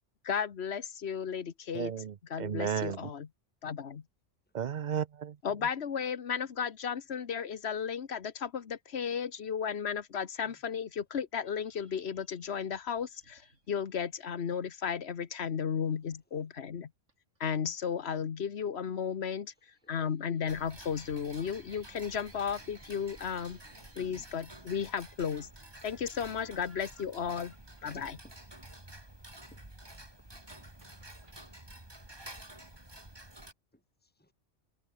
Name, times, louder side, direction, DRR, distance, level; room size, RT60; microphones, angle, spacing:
voice 1, 0.2-1.9 2.3-3.3 3.6-4.0 5.4-16.9 17.4-23.6 24.0-25.5 25.8-27.5 27.8-28.2, left 7 dB, 60° left, 1.4 m, -34 dB
voice 2, 1.7-3.1 4.5-5.4, right 8 dB, 45° right, 0.6 m, -34 dB
sound 1, 11.4-14.1 15.7-16.0 17.1-17.4 18.6-19.2 19.5-28.6 29.6-31.3, right 2 dB, 90° right, 4.7 m, -61 dB
Tick-tock, 20.5-33.5, right 1 dB, 20° right, 3.1 m, -51 dB
voice 3, 27.8-28.4 29.4-29.7 30.6-30.7 31.0-31.6 32.9-34.3, left 1 dB, 10° left, 2.8 m, -59 dB
omnidirectional pair, 1.2 m